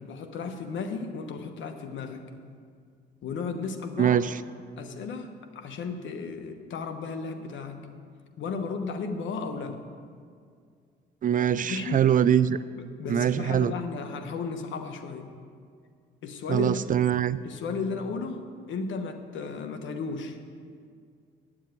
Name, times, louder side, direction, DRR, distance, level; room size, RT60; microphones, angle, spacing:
voice 1, 0.0-2.3 3.2-4.2 4.8-7.8 8.4-9.8 11.6-12.1 12.8-15.3 16.2-16.8 17.4-20.4, left 4 dB, 70° left, 7 dB, 1.1 m, -34 dB
voice 2, 4.0-4.4 11.2-12.6 13.1-13.7 16.5-17.4, right 9 dB, 45° right, 15 dB, 0.4 m, -23 dB
9.4 x 7.5 x 9.0 m, 2.2 s
cardioid pair, 90°, 20 cm